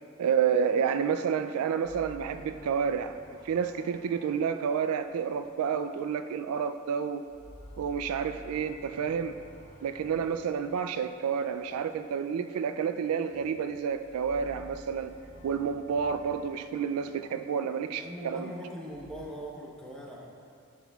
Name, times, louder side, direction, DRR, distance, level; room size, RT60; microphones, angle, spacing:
voice 1, 0.2-7.2 7.8-9.4 9.8-15.1 15.4-18.5, right 7 dB, 80° right, 9 dB, 0.3 m, -30 dB
sound 1, 1.8-6.8 7.1-12.5 13.2-19.2, equal, 80° left, 1.6 m, -53 dB
voice 2, 18.0-20.3, equal, 5° left, -3 dB, 0.9 m, -41 dB
10.5 x 6.1 x 2.3 m, 2.5 s
head